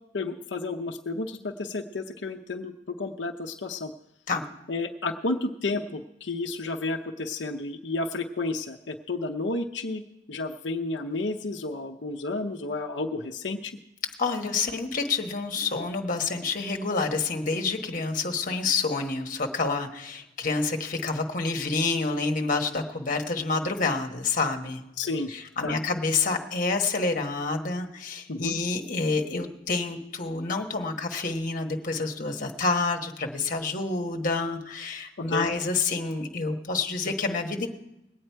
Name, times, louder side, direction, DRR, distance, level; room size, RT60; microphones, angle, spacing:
voice 1, 0.1-3.9 4.7-10.0 10.3-13.7 25.0-25.3 25.6-25.8 28.3-28.6 35.2-35.5, left 3 dB, 85° left, 3 dB, 0.7 m, -31 dB
voice 2, 14.2-24.8 25.3-37.7, left 4 dB, 50° left, 4 dB, 1.3 m, -28 dB
21.0 x 8.8 x 4.6 m, 0.90 s
head